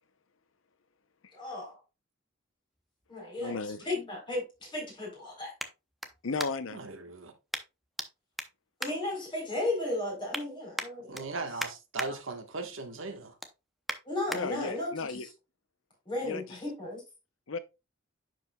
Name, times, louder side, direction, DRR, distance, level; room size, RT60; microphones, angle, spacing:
voice 1, 1.3-1.8 3.1-3.6 3.9-5.5 8.8-11.3 12.0-12.1 14.1-15.3 16.1-17.0, left 2 dB, 25° left, 3.8 m, -35 dB
sound 1, 2.7-6.9 7.5-8.1 8.3-9.7 10.0-10.4 10.7-12.1 12.5-12.8 13.1-14.4 15.0-15.1, equal, ahead, 0.6 m, -40 dB
voice 2, 3.4-3.9 6.2-6.8 14.3-15.3 16.2-16.4 17.5-17.6, left 4 dB, 75° left, 0.7 m, -34 dB
voice 3, 6.7-7.3 11.1-13.4, right 3 dB, 75° right, 1.4 m, -38 dB
10.5 x 4.9 x 2.3 m
head